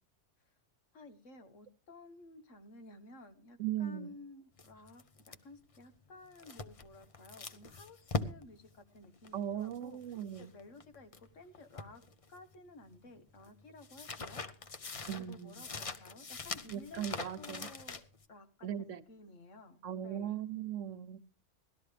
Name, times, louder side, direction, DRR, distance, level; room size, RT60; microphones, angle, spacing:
voice 1, 0.9-10.0 10.4-12.0 12.3-14.4 14.9-17.0 17.4-18.0 18.3-20.4, left 2 dB, 90° left, 1.7 m, -54 dB
voice 2, 3.6-4.2 9.3-10.5 15.1-15.6 16.7-17.7 18.6-19.0 19.8-21.2, right 10 dB, 85° right, 1.2 m, -38 dB
sound 1, 4.6-11.3 11.5-12.7 12.9-18.2, left 4 dB, 35° left, 0.7 m, -43 dB
18.0 x 13.0 x 3.3 m
omnidirectional pair, 1.2 m